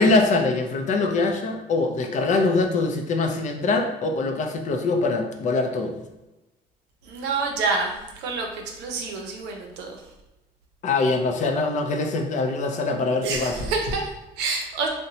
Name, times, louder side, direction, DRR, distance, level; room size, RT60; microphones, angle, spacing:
voice 1, 0.0-5.9 10.8-13.6, left 3 dB, 45° left, 4 dB, 0.4 m, -23 dB
voice 2, 7.0-10.0 13.2-14.9, right 4 dB, 85° right, 2 dB, 0.5 m, -28 dB
2.7 x 2.1 x 2.7 m, 0.99 s
cardioid pair, 110°, 17 cm